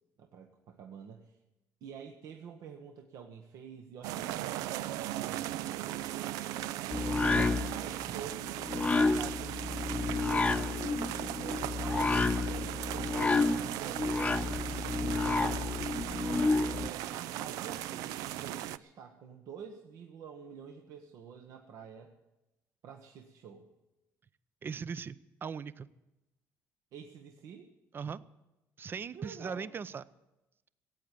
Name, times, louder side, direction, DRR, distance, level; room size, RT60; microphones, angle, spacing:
voice 1, 0.2-1.4 1.8-6.1 6.9-8.7 8.9-11.1 11.4-15.9 16.7-22.1 22.8-23.7 26.9-27.7 29.1-29.7, right 7 dB, 70° right, 4 dB, 1.2 m, -48 dB
sound 1, 4.0-18.8, right 14 dB, 85° right, 0.4 m, -38 dB
sound 2, 6.9-16.9, left 3 dB, 20° left, 0.5 m, -30 dB
voice 2, 24.6-25.9 27.9-28.2 28.8-30.0, right 6 dB, 35° right, 17 dB, 0.6 m, -39 dB
16.5 x 8.4 x 9.1 m, 0.97 s
cardioid pair, 95°, 6 cm